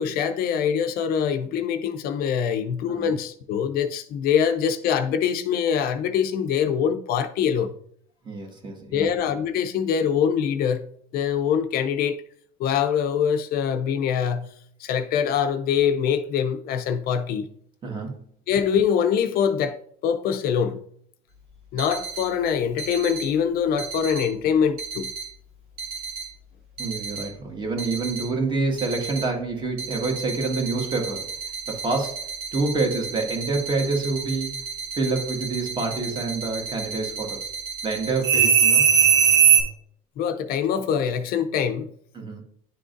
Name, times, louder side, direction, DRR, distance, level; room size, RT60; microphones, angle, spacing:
voice 1, 0.0-7.7 8.9-10.9 11.1-12.2 12.6-14.5 14.8-17.5 18.5-19.8 20.0-20.8 21.7-25.1 40.2-41.9, left 8 dB, 65° left, 0.6 m, -24 dB
voice 2, 8.2-9.2 17.8-18.2 26.8-31.3 31.7-34.5 34.9-37.5 37.8-38.8 42.1-42.4, right 3 dB, 30° right, 1.6 m, -27 dB
sound 1, 21.8-22.2 22.8-23.2 23.8-24.2 24.8-25.2 25.8-26.2 26.8-27.2 27.8-28.2 28.8-29.2 29.8-39.6, right 7 dB, 85° right, 2.0 m, -23 dB
10.0 x 3.7 x 2.6 m
cardioid pair, 120°, 17 cm